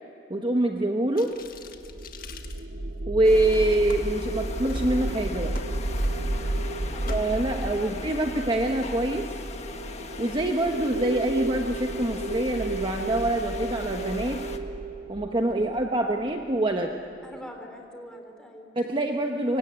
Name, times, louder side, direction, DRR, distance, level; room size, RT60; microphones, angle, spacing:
voice 1, 0.3-1.3 3.1-5.5 7.1-9.3 10.2-14.4 15.1-17.0 18.7-19.6, right 1 dB, 30° right, 3 dB, 1.2 m, -25 dB
sound 1, 1.2-3.1 3.5-4.0 4.6-4.8 5.2-8.9, left 4 dB, 55° left, 1.7 m, -46 dB
sound 2, 1.5-16.7, right 1 dB, 60° right, 1.5 m, -32 dB
sound 3, 3.2-14.6, left 4 dB, 40° left, 1.5 m, -41 dB
voice 2, 6.9-8.7 17.2-18.8, equal, 5° left, 2 dB, 3.8 m, -44 dB
24.5 x 24.5 x 9.6 m, 2.7 s
head